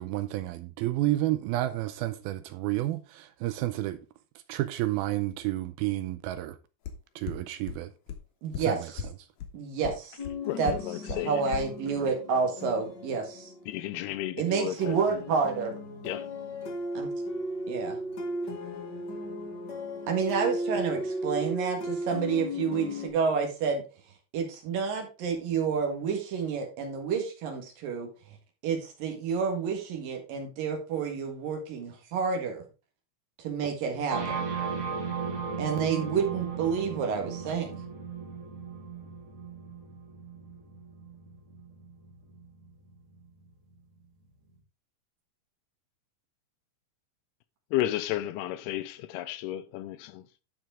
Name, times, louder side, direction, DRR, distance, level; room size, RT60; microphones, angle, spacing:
voice 1, 0.0-4.0 4.5-6.6 7.2-7.9 8.7-8.9, right 15 dB, 80° right, 2.3 m, -30 dB
sound 1, 6.9-7.0 7.3-7.4 7.7-7.8 8.1-8.2 8.5-8.6 9.0-9.1 9.4-9.5 9.8-9.9 10.2-10.3 10.7-10.8 11.1-11.2 11.5-11.6, left 9 dB, 65° left, 2.5 m, -33 dB
voice 2, 8.4-8.8 9.5-10.2 10.6-10.7 11.0-13.5 14.4-15.7 16.9-17.1 17.7-18.0 20.1-23.8 24.3-28.1 28.6-32.6 33.4-34.4 35.6-37.7, right 6 dB, 65° right, 3.2 m, -29 dB
sound 2, 10.2-14.2 14.8-23.1, left 1 dB, 40° left, 1.6 m, -36 dB
voice 3, 10.5-11.4 13.7-15.2 16.0-16.3 47.7-50.3, left 14 dB, 90° left, 2.7 m, -33 dB
sound 3, 34.1-43.7, right 5 dB, 40° right, 3.2 m, -37 dB
12.0 x 4.8 x 3.7 m
omnidirectional pair, 4.6 m